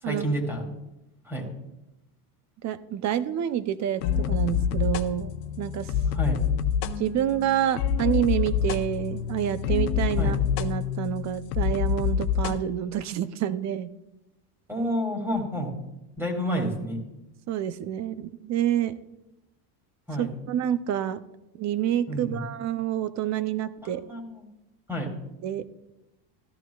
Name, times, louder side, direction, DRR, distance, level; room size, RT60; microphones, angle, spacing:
voice 1, 0.0-0.7 1.2-1.5 6.1-6.4 10.2-10.3 14.7-15.7 16.2-17.0 20.1-20.3 22.1-22.4 23.8-24.5 24.9-25.1, equal, 5° right, 1 dB, 2.2 m, -29 dB
voice 2, 2.6-5.9 7.0-13.9 17.5-19.0 20.2-21.2 21.6-24.0 25.4-25.6, right 11 dB, 35° right, 14 dB, 0.5 m, -28 dB
sound 1, 4.0-12.6, left 8 dB, 90° left, 0.9 m, -27 dB
14.5 x 11.5 x 2.3 m, 0.93 s
supercardioid pair, 120°, 50 cm